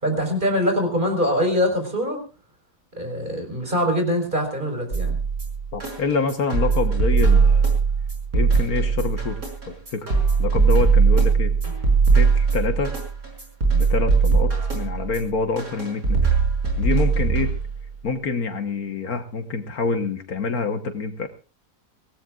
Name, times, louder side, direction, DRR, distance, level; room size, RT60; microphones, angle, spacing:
voice 1, 0.0-2.2 3.0-5.2, equal, 30° right, 4 dB, 4.8 m, -23 dB
sound 1, 4.9-17.9, right 5 dB, 60° right, 6.2 m, -20 dB
voice 2, 5.7-7.7 8.3-10.1 10.4-11.5 12.1-13.0 13.7-16.2 16.8-17.5 18.0-21.3, left 4 dB, 65° left, 7 dB, 1.7 m, -26 dB
24.5 x 17.5 x 2.4 m, 0.32 s
omnidirectional pair, 1.7 m